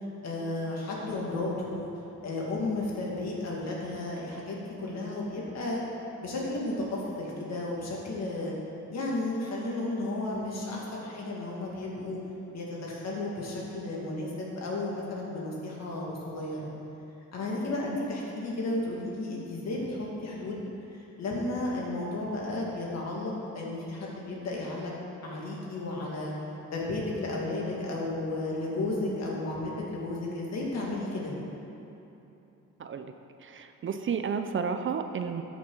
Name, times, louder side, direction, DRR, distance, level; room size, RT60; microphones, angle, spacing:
voice 1, 0.2-1.9 2.2-5.8 6.2-8.5 8.9-12.2 12.5-16.7 17.3-20.6 21.2-24.9 25.2-26.3 26.7-31.3, left 2 dB, 60° left, -3 dB, 2.4 m, -33 dB
voice 2, 32.8-33.1 33.4-35.4, right 6 dB, 40° right, 7 dB, 0.6 m, -32 dB
13.0 x 6.3 x 4.0 m, 3.0 s
cardioid pair, 90°, 30 cm